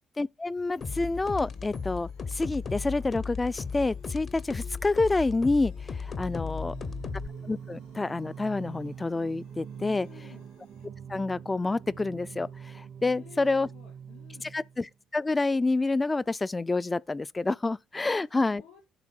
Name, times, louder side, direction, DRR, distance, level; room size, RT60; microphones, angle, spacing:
voice 1, 0.2-6.7 7.4-10.1 11.1-13.7 14.4-14.9 15.1-18.6, left 3 dB, 25° left, 0.4 m, -28 dB
sound 1, 0.6-10.9, left 3 dB, 85° left, 3.8 m, -58 dB
sound 2, 0.8-7.3, left 5 dB, 45° left, 0.8 m, -36 dB
Singing, 6.0-15.0, right 7 dB, 55° right, 0.6 m, -44 dB
voice 2, 6.4-7.0 9.8-10.4 13.0-14.5 17.9-18.8, left 8 dB, 70° left, 5.1 m, -54 dB
11.0 x 3.7 x 4.6 m
hypercardioid pair, 50°, 0 cm